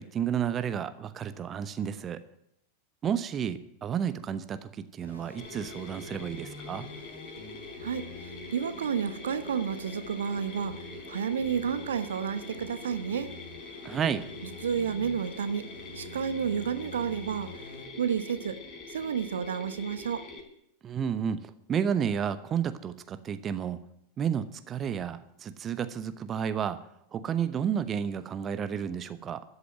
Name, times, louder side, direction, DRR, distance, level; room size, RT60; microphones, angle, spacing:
voice 1, 0.0-2.2 3.0-6.9 13.8-14.3 20.8-23.9 24.2-26.8 27.1-29.4, right 8 dB, 25° right, 11 dB, 0.9 m, -31 dB
sound 1, 5.0-17.8, left 1 dB, 75° left, 5.0 m, -48 dB
Mechanisms, 5.4-20.4, left 3 dB, 30° left, 4.4 m, -44 dB
voice 2, 7.8-13.3 14.4-15.6 15.9-17.5 18.0-18.6 18.9-20.3, right 7 dB, 65° right, 12 dB, 0.9 m, -31 dB
13.5 x 8.2 x 9.6 m, 0.77 s
figure-of-eight pair, 90°, 0 cm